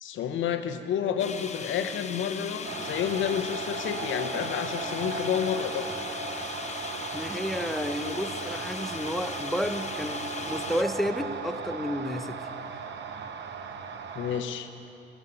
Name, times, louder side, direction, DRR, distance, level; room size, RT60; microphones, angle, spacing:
voice 1, 0.0-5.9 14.1-14.7, left 8 dB, 75° left, 9 dB, 0.8 m, -30 dB
sound 1, 1.2-10.8, left 5 dB, 35° left, 0.7 m, -38 dB
sound 2, 2.6-14.4, right 5 dB, 65° right, 0.8 m, -37 dB
voice 2, 7.1-12.4, equal, ahead, 8 dB, 0.7 m, -31 dB
12.5 x 7.3 x 9.7 m, 2.9 s
cardioid pair, 90°, 20 cm